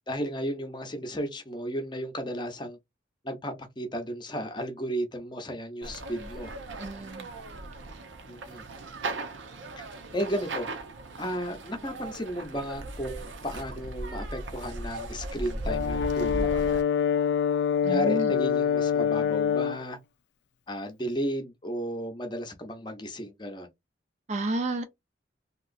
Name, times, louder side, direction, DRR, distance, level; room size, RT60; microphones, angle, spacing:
voice 1, 0.1-2.8 3.2-6.5 8.3-8.6 9.8-9.9 10.1-10.7 11.2-16.8 17.8-20.0 20.7-23.7, equal, 25° left, 0.6 m, -34 dB
sound 1, 5.8-16.8, right 2 dB, 80° right, 0.7 m, -37 dB
voice 2, 6.8-7.3 17.8-18.3 24.3-24.9, right 2 dB, 40° right, 0.4 m, -30 dB
Brass instrument, 15.7-19.8, left 7 dB, 65° left, 0.4 m, -25 dB
2.9 x 2.9 x 2.5 m
head